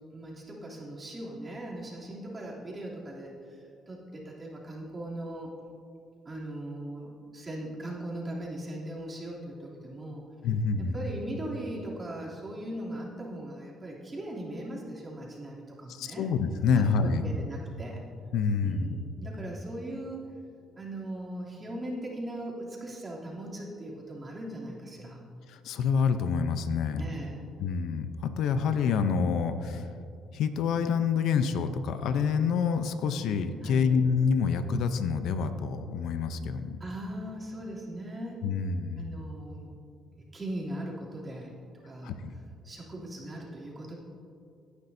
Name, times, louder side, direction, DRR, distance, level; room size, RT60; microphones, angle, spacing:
voice 1, 0.1-5.5 6.2-10.2 10.9-16.3 16.7-18.0 18.6-20.3 20.7-25.2 27.0-27.4 33.6-33.9 36.8-38.4 39.0-39.7 40.1-41.5 41.8-42.1 42.6-43.9, right 1 dB, 30° right, -4 dB, 2.9 m, -39 dB
voice 2, 10.4-11.0 15.9-17.3 18.3-19.0 25.5-27.0 27.6-29.9 30.3-36.8 38.4-39.1 42.0-42.3, left 6 dB, 75° left, 9 dB, 0.6 m, -27 dB
17.5 x 9.8 x 2.7 m, 2.5 s
cardioid pair, 85°, 0 cm